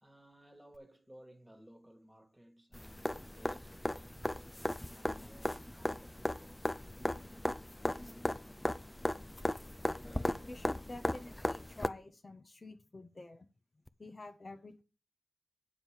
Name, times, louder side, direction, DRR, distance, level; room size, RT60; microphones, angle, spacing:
voice 1, 0.0-6.7, equal, 10° right, 1.7 m, -59 dB
sound 1, 2.7-11.9 13.9-14.0, left 1 dB, 15° left, 0.5 m, -37 dB
voice 2, 10.5-13.5 14.0-14.8, left 2 dB, 40° left, 0.8 m, -49 dB
9.1 x 5.0 x 7.4 m
wide cardioid pair, 125°, 0 cm